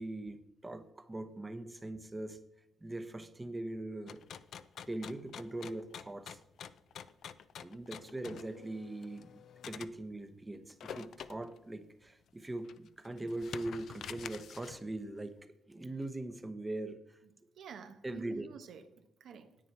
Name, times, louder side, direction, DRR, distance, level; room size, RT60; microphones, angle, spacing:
voice 1, 0.0-2.4 2.8-4.2 4.9-6.4 7.6-9.3 9.7-15.3 15.7-17.2 18.0-18.5, right 2 dB, 15° right, 9 dB, 1.0 m, -41 dB
sound 1, 4.1-9.9 10.7-11.6 12.1-12.2 12.6-14.9, left 8 dB, 70° left, 0.5 m, -48 dB
voice 2, 17.6-19.6, right 6 dB, 70° right, 8 dB, 1.2 m, -49 dB
10.0 x 9.0 x 4.6 m, 0.86 s
cardioid pair, 105°, 0 cm